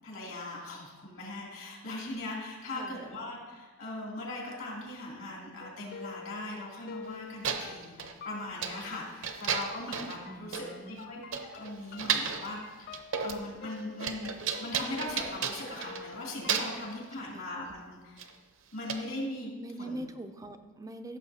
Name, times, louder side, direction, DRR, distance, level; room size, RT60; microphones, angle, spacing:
voice 1, 0.0-11.2 11.5-18.3 18.7-19.5 19.8-20.0, left 2 dB, 70° left, -3 dB, 2.7 m, -40 dB
sound 1, 5.6-17.2, left 5 dB, 50° left, 0.4 m, -48 dB
sound 2, 7.0-7.1 7.4-8.1 8.6-8.9 9.2-10.2 10.5-10.7 11.0-11.1 11.3-12.5 12.9-13.5 13.7-16.1 16.5-16.9 18.2-18.3 18.9-19.0, right 6 dB, 65° right, 0.7 m, -33 dB
voice 2, 10.3-11.1 17.3-17.5 19.6-21.2, right 1 dB, 15° right, 7 dB, 0.4 m, -42 dB
14.5 x 6.7 x 2.8 m, 1.3 s
head